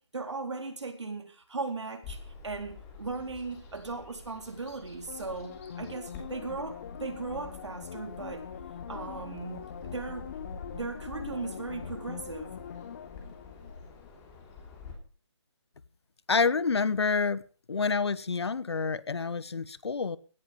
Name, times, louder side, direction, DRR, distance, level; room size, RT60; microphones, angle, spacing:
voice 1, 0.0-2.2 2.4-8.5 8.9-10.3 10.7-12.6, right 3 dB, 70° right, 5 dB, 4.1 m, -38 dB
Bird vocalization bird call bird song, 2.0-14.9, left 4 dB, 15° left, 3.1 m, -47 dB
sound 1, 5.1-14.5 14.8-14.9, left 8 dB, 30° left, 1.0 m, -43 dB
voice 2, 16.3-17.4 17.7-20.2, left 4 dB, 60° left, 19 dB, 1.1 m, -28 dB
17.0 x 11.0 x 5.3 m, 0.39 s
figure-of-eight pair, 160°, 15 cm